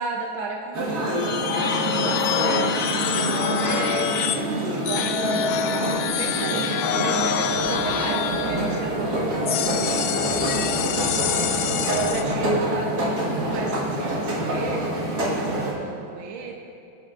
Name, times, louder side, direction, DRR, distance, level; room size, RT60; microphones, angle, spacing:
voice 1, 0.0-2.8 3.1-11.2 11.8-16.5, right 4 dB, 75° right, 1 dB, 1.6 m, -33 dB
sound 1, 0.7-15.7, right 1 dB, 50° right, 2.2 m, -26 dB
sound 2, 1.0-4.4 4.9-8.8 9.5-12.2, left 8 dB, 85° left, 0.8 m, -26 dB
sound 3, 7.4-12.5, left 1 dB, 35° left, 1.2 m, -38 dB
22.5 x 8.2 x 2.5 m, 2.5 s
omnidirectional pair, 2.2 m